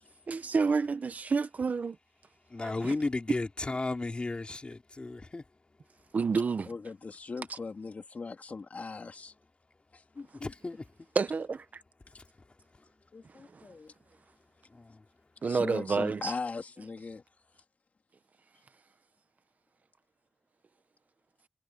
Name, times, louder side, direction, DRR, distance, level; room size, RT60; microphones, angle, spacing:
voice 1, 0.3-2.0 2.6-2.9 6.1-6.7 11.1-11.8 13.5-13.6 15.4-16.3, right 4 dB, 85° right, 0.9 m, -29 dB
voice 2, 2.5-5.4 10.3-10.9 12.2-12.3 14.7-15.0, left 2 dB, 45° left, 2.7 m, -34 dB
voice 3, 6.6-9.3 9.9-10.5 12.1-12.2 13.1-13.9 15.4-17.2, left 4 dB, 75° left, 3.1 m, -40 dB
wide cardioid pair, 70°, 3 cm